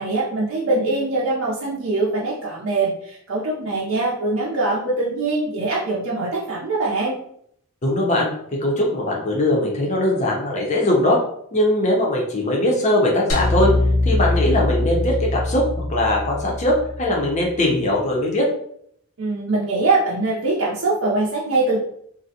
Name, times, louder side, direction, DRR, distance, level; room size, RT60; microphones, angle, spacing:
voice 1, 0.0-7.2 19.2-21.8, right 2 dB, 60° right, -5 dB, 0.5 m, -22 dB
voice 2, 7.8-8.3 8.6-11.2 11.5-13.7 14.0-15.6 15.9-18.4, left 1 dB, 30° left, -2 dB, 0.5 m, -20 dB
sound 1, 13.3-17.7, left 2 dB, 90° left, 0.7 m, -23 dB
2.4 x 2.0 x 2.7 m, 0.68 s
head